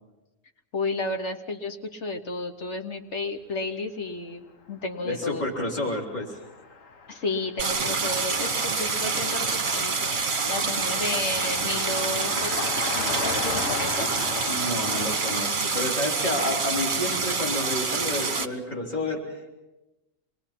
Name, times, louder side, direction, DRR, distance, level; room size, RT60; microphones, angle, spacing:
voice 1, 0.7-5.5 7.1-12.6 12.9-14.1, left 2 dB, 65° left, 5 dB, 1.5 m, -32 dB
voice 2, 5.0-6.4 14.5-19.5, left 1 dB, 35° left, -2 dB, 3.5 m, -30 dB
Car passing by, 5.3-15.5, left 5 dB, 80° left, 1.5 m, -36 dB
Stream, 7.6-18.5, right 4 dB, 40° right, 1.3 m, -27 dB
27.0 x 21.5 x 5.9 m, 1.0 s
omnidirectional pair, 1.3 m